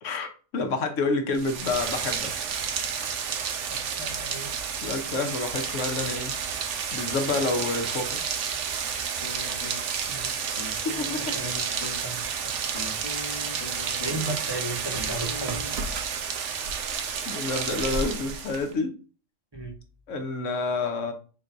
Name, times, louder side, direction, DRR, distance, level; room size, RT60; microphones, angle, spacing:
voice 1, 0.0-2.3 4.8-6.4 6.9-8.2 10.8-11.4 12.7-12.9 17.2-19.0 20.1-21.1, left 3 dB, 70° left, 1.2 m, -29 dB
Rain, 1.3-18.7, right 6 dB, 70° right, 1.0 m, -31 dB
voice 2, 3.7-4.5 7.3-7.4 10.1-10.3 11.3-11.6 12.0-12.6 14.0-15.9 19.5-19.7, right 2 dB, 20° right, 0.9 m, -35 dB
sound 1, 9.2-10.1 10.5-12.0 12.5-14.4 14.7-15.7, left 3 dB, 35° left, 1.1 m, -40 dB
4.0 x 2.6 x 4.5 m
omnidirectional pair, 1.3 m